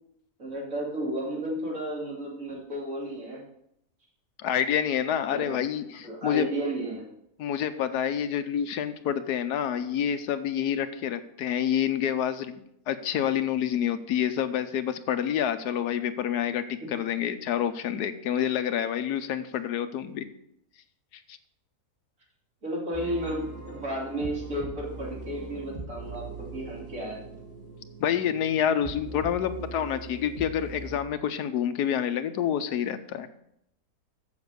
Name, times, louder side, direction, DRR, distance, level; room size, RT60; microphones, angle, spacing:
voice 1, 0.4-3.4 5.3-5.6 6.0-7.1 22.6-27.2, right 1 dB, 55° right, -4 dB, 3.2 m, -33 dB
voice 2, 4.4-6.5 7.4-20.3 21.3-21.4 28.0-33.3, left 9 dB, 85° left, 10 dB, 1.3 m, -28 dB
sound 1, 22.9-31.0, right 3 dB, 40° right, 2.1 m, -41 dB
7.2 x 7.0 x 6.7 m, 0.76 s
omnidirectional pair, 1.7 m